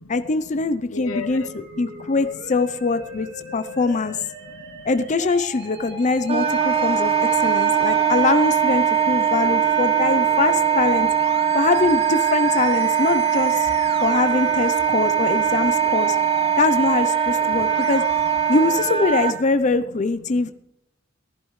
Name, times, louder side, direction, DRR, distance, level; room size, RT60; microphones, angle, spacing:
voice 1, 0.1-4.2 4.8-11.1 11.5-13.7 14.0-16.2 16.6-18.0 18.5-20.5, left 3 dB, 35° left, 0.5 m, -23 dB
voice 2, 0.9-2.1 3.4-3.5 4.5-4.8 7.2-8.1 10.1-10.2 11.4-11.5 13.9-14.0 15.5-15.6 16.2-16.6 17.5-17.9 20.3-20.5, left 4 dB, 85° left, 0.9 m, -39 dB
Musical instrument, 1.1-19.0, right 2 dB, 55° right, 2.2 m, -39 dB
Wind instrument woodwind instrument, 6.3-19.3, right 8 dB, 30° right, 1.2 m, -21 dB
18.5 x 14.5 x 3.2 m
head